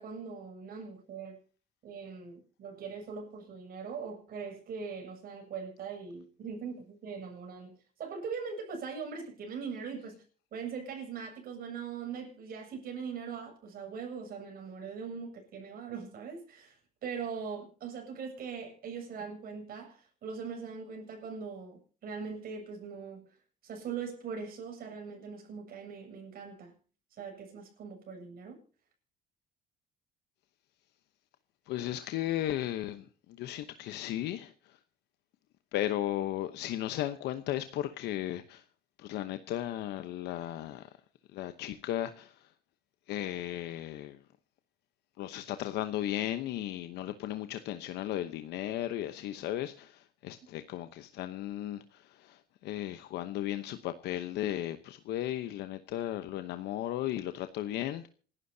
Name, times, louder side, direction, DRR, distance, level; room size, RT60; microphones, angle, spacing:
voice 1, 0.0-1.4 1.8-10.2 10.5-23.2 23.6-26.8 27.2-28.6, right 6 dB, 60° right, 7.7 m, -41 dB
voice 2, 31.7-33.1 33.4-34.8 35.7-38.6 39.0-40.9 41.3-42.5 43.1-44.2 45.2-58.1, left 13 dB, 80° left, 1.0 m, -35 dB
27.5 x 12.5 x 2.8 m
cardioid pair, 110°, 17 cm